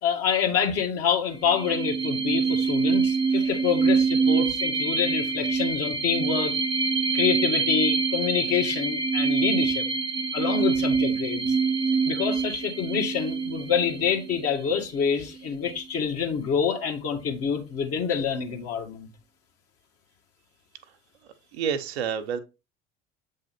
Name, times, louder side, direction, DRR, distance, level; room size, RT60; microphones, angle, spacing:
voice 1, 0.0-6.5 7.1-9.9 10.3-11.6 12.0-19.1, left 7 dB, 45° left, 1.7 m, -27 dB
sound 1, 1.4-14.7, right 5 dB, 15° right, 0.7 m, -25 dB
voice 2, 21.5-22.4, right 7 dB, 65° right, 1.0 m, -29 dB
8.0 x 3.6 x 4.3 m
figure-of-eight pair, 65°, 34 cm